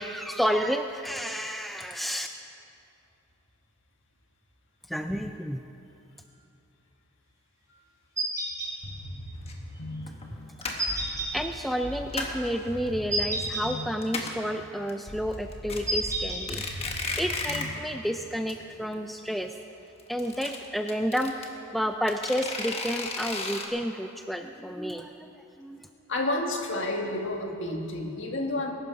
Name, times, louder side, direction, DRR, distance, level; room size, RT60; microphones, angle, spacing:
voice 1, 0.0-2.3 4.9-5.6 11.0-16.6 17.2-19.6 20.1-25.9, equal, ahead, 5 dB, 0.3 m, -31 dB
sound 1, 8.2-8.7 10.8-11.3 13.1-13.7 15.9-16.4, right 1 dB, 15° right, 3.2 m, -29 dB
sound 2, 8.8-18.6, left 1 dB, 85° left, 2.9 m, -41 dB
sound 3, 9.5-9.6 10.1-10.3 10.6-11.0 11.7-12.5 12.9-13.4 13.7-13.8 14.0-14.5 14.9-15.0 15.3-15.8 16.3-17.8 18.1-18.2 18.5-18.6 18.8-18.9 20.0-21.5 22.1-23.7, left 3 dB, 30° left, 1.2 m, -34 dB
voice 2, 26.1-28.7, left 1 dB, 60° left, 1 dB, 1.8 m, -30 dB
20.5 x 11.5 x 4.8 m, 2.7 s
head